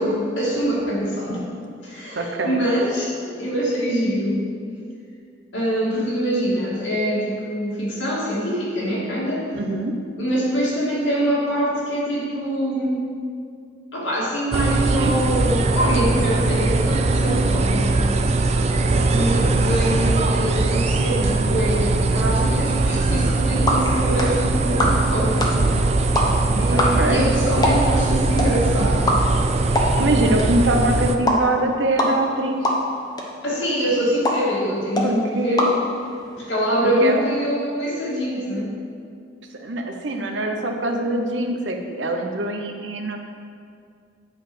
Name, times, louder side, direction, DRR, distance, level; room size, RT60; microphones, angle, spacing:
voice 1, 0.0-1.4 1.8-4.4 5.5-9.5 10.2-13.0 13.9-18.0 18.9-25.6 26.5-29.0 33.4-35.7 36.3-38.7, equal, 80° left, -5 dB, 2.3 m, -24 dB
voice 2, 2.2-2.6 9.5-9.9 15.0-15.1 26.7-27.3 30.0-32.6 35.0-35.8 37.0-37.5 39.6-43.2, right 1 dB, 70° right, 4 dB, 0.9 m, -23 dB
sound 1, 14.5-31.2, right 3 dB, 35° right, 0.4 m, -20 dB
sound 2, 23.2-36.5, left 1 dB, 20° left, 0.9 m, -26 dB
8.8 x 4.8 x 6.1 m, 2.3 s
head